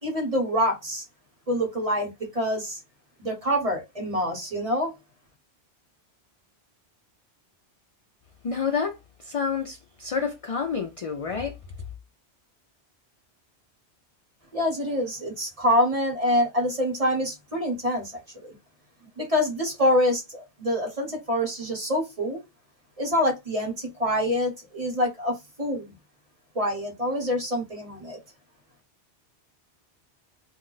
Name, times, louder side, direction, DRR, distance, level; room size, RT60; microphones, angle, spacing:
voice 1, 0.0-1.0 1.5-2.8 3.2-4.9 14.5-18.1 18.4-18.5 19.2-22.4 23.0-25.9 26.5-28.2, equal, 35° right, 1.2 m, -26 dB
voice 2, 8.4-9.0 9.2-11.6, left 5 dB, 60° left, 0.3 m, -28 dB
2.4 x 2.1 x 3.8 m
omnidirectional pair, 1.1 m